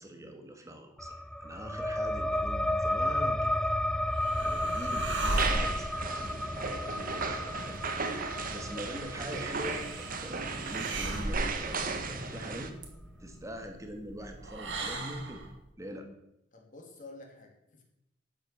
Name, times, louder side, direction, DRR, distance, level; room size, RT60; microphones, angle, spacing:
voice 1, 0.0-3.7 4.4-6.8 7.1-7.8 8.3-12.7 13.2-15.4 15.8-16.1, equal, 15° right, 5 dB, 2.1 m, -43 dB
sound 1, 1.0-12.1, left 1 dB, 5° left, 0.4 m, -33 dB
sound 2, 3.5-15.6, right 2 dB, 75° right, 2.4 m, -38 dB
voice 2, 4.3-4.6 8.5-9.0 16.5-17.8, left 3 dB, 45° left, 1 dB, 2.6 m, -50 dB
sound 3, 5.3-12.7, right 4 dB, 50° right, 1.5 m, -35 dB
12.0 x 8.4 x 7.4 m, 0.81 s
head